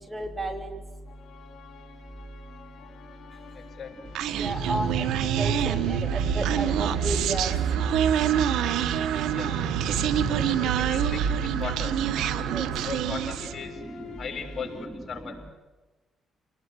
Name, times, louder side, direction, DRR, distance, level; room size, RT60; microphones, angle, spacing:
voice 1, 0.1-0.7 4.4-5.1 5.4-7.5 10.4-10.5 12.0-12.1 12.5-12.7, right 1 dB, 20° right, 7 dB, 2.9 m, -32 dB
sound 1, 1.0-14.8, left 6 dB, 60° left, 5.5 m, -48 dB
voice 2, 3.5-4.2 9.3-9.6 10.5-11.9 12.7-13.8 14.2-15.4, left 5 dB, 40° left, 4 dB, 6.9 m, -38 dB
Human voice, 4.1-13.6, right 9 dB, 85° right, 1.5 m, -26 dB
29.0 x 20.0 x 9.6 m, 1.2 s
cardioid pair, 90°, 0 cm